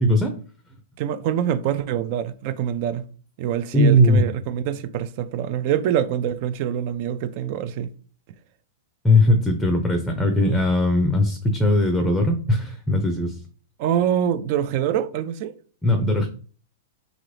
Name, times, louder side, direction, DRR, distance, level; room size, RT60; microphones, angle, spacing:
voice 1, 0.0-0.4 3.7-4.2 9.0-13.4 15.8-16.3, left 1 dB, 5° left, 0.5 m, -19 dB
voice 2, 1.0-3.0 3.4-7.9 13.8-15.5, right 10 dB, 50° right, 0.3 m, -25 dB
2.9 x 2.5 x 3.2 m
hypercardioid pair, 125°, 0 cm